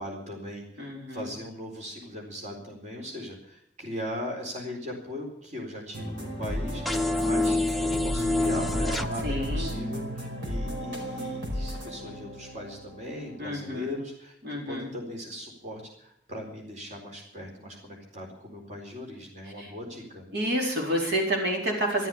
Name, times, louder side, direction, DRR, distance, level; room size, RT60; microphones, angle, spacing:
voice 1, 0.0-20.2, left 1 dB, 40° right, 0 dB, 4.2 m, -39 dB
voice 2, 0.8-1.3 9.2-9.7 13.4-13.9 14.4-14.9 19.6-19.7 20.3-22.1, equal, 60° right, -1 dB, 4.4 m, -29 dB
sound 1, 5.9-13.7, equal, 90° right, 4.9 m, -34 dB
sound 2, 6.9-9.1, left 2 dB, ahead, 0.5 m, -26 dB
13.5 x 13.0 x 7.2 m, 0.70 s
head